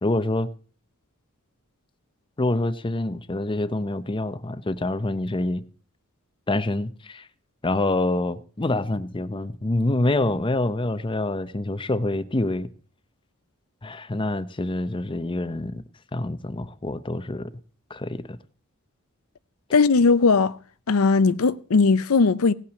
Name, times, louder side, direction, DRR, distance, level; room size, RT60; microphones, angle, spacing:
voice 1, 0.0-0.5 2.4-5.6 6.5-7.3 7.6-12.7 13.8-15.8 16.1-17.5 17.9-18.4, left 2 dB, 25° left, 0.6 m, -26 dB
voice 2, 19.7-20.6 20.9-22.5, left 4 dB, 75° left, 0.6 m, -18 dB
17.5 x 5.8 x 7.5 m
head